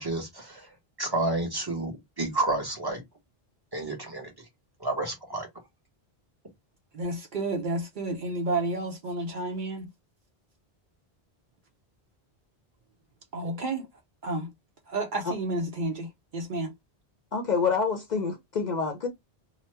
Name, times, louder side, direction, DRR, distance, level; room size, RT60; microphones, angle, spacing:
voice 1, 0.0-3.0 3.7-4.4 4.8-5.5, right 2 dB, 25° right, 1.1 m, -30 dB
voice 2, 6.9-9.9 13.3-13.9 14.2-14.5 14.9-16.7, right 2 dB, 55° right, 0.7 m, -31 dB
voice 3, 17.3-19.1, left 5 dB, 55° left, 0.6 m, -27 dB
2.9 x 2.1 x 3.2 m
omnidirectional pair, 1.0 m